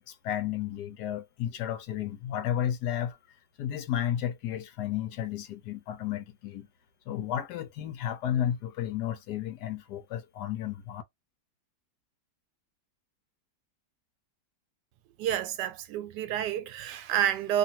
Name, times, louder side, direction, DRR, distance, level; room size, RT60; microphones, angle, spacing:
voice 1, 0.0-3.2 3.6-6.7 7.1-11.0, left 10 dB, 75° left, 1.2 m, -32 dB
voice 2, 15.2-17.6, right 11 dB, 80° right, 1.2 m, -29 dB
2.8 x 2.6 x 2.7 m
omnidirectional pair, 1.9 m